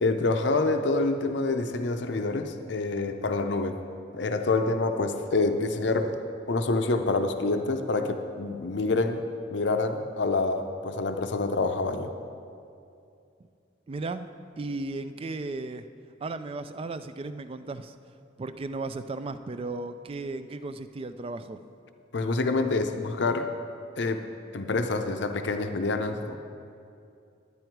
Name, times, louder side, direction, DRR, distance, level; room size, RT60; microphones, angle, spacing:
voice 1, 0.0-3.8 4.1-6.2 6.5-9.2 9.5-12.1 22.1-23.5 24.0-24.3 24.5-26.4, left 3 dB, 65° left, 7 dB, 0.6 m, -27 dB
voice 2, 13.9-14.3 14.6-15.9 16.2-17.9 18.4-21.6, right 3 dB, 30° right, 11 dB, 0.3 m, -35 dB
10.5 x 9.8 x 4.6 m, 2.5 s
head